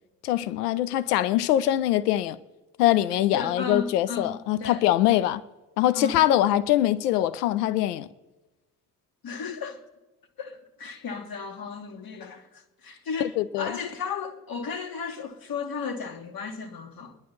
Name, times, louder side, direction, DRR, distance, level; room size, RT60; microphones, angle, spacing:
voice 1, 0.2-2.4 2.8-5.4 5.8-8.1 13.4-13.7, left 13 dB, 80° left, 0.6 m, -23 dB
voice 2, 3.3-4.9 5.9-6.2 9.2-9.8 10.4-17.2, left 5 dB, 50° left, 1.8 m, -35 dB
26.5 x 11.0 x 4.2 m
figure-of-eight pair, 45°, 46 cm